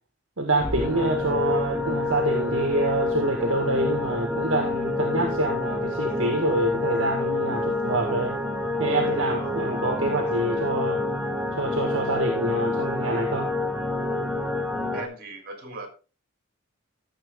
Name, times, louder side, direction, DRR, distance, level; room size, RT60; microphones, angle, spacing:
voice 1, 0.4-8.4 8.8-11.0 11.6-13.5, right 2 dB, 65° right, 3 dB, 2.0 m, -26 dB
sound 1, 0.6-15.0, left 2 dB, 5° right, 1.4 m, -27 dB
voice 2, 14.9-15.9, right 2 dB, 45° right, 5 dB, 3.6 m, -38 dB
14.0 x 7.4 x 3.7 m, 0.32 s
head